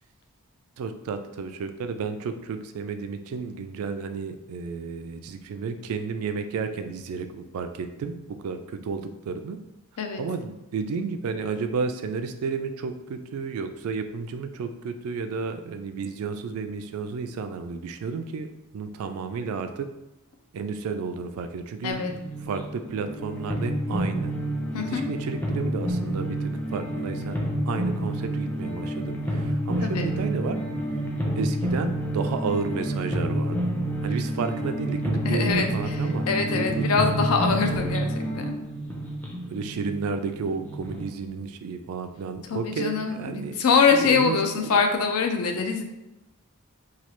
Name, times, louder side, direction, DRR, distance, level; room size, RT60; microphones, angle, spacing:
voice 1, 0.8-9.6 10.2-18.5 18.7-19.9 20.5-22.0 22.4-24.3 24.9-27.4 27.7-30.6 31.4-33.6 34.0-36.3 36.5-36.9 39.5-43.6 43.9-45.0, right 5 dB, 70° right, 8 dB, 0.3 m, -32 dB
voice 2, 21.8-22.2 24.7-25.0 29.8-30.1 35.2-38.6 42.5-45.8, left 5 dB, 75° left, 5 dB, 0.4 m, -24 dB
sound 1, 21.9-41.0, right 1 dB, 10° left, 0.4 m, -29 dB
3.1 x 2.3 x 2.9 m, 0.96 s
head